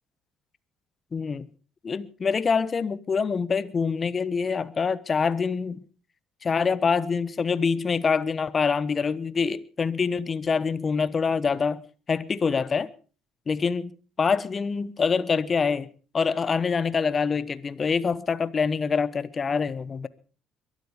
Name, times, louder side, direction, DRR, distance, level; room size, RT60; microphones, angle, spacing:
voice 1, 1.1-1.5 1.8-5.8 6.4-11.8 12.1-12.9 13.5-13.9 14.2-15.9 16.1-20.1, left 5 dB, 35° left, 1.1 m, -25 dB
22.5 x 12.5 x 5.1 m
hypercardioid pair, 55°, 0 cm